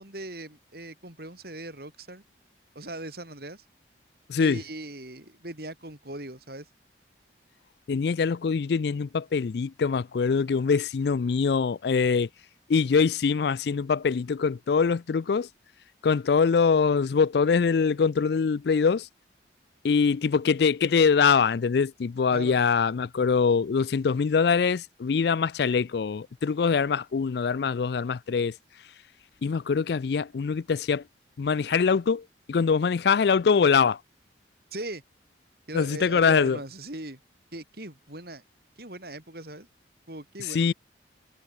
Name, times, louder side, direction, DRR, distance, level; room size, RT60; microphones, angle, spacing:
voice 1, 0.0-2.2 2.7-3.6 4.4-6.7 22.3-22.5 34.7-35.0 35.7-37.2 37.5-38.4 38.8-39.7 40.1-40.7, right 1 dB, 55° right, 4.5 m, -39 dB
voice 2, 4.3-4.6 7.9-12.3 12.7-15.5 16.0-19.1 19.8-28.6 29.4-31.0 31.4-34.0 35.7-36.6 40.4-40.7, left 5 dB, 60° left, 0.4 m, -23 dB
head